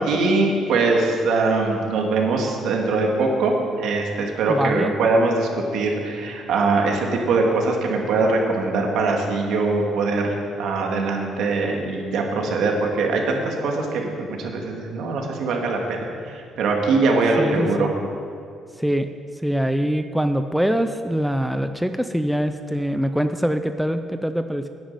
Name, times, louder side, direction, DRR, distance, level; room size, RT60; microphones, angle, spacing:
voice 1, 0.0-3.5 3.8-17.9, right 3 dB, 75° right, 1 dB, 2.4 m, -22 dB
voice 2, 4.5-4.9 17.4-17.9 18.8-19.1 19.4-24.7, equal, ahead, 8 dB, 0.5 m, -23 dB
10.5 x 9.0 x 9.0 m, 2.4 s
cardioid pair, 130°, 0 cm